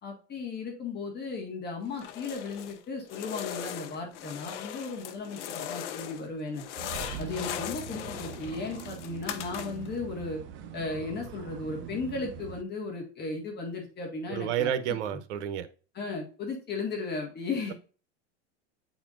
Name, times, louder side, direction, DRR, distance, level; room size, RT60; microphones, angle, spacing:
voice 1, 0.0-6.6 7.2-10.4 10.7-14.7 15.1-15.2 15.9-17.7, left 3 dB, 30° left, 1.6 m, -35 dB
sound 1, 1.9-2.8 3.1-6.3 6.5-9.9, left 10 dB, 85° left, 0.8 m, -39 dB
sound 2, 6.8-12.6, right 8 dB, 35° right, 0.6 m, -42 dB
voice 2, 14.3-15.7, right 10 dB, 85° right, 0.9 m, -30 dB
9.2 x 4.2 x 2.5 m
supercardioid pair, 135°, 34 cm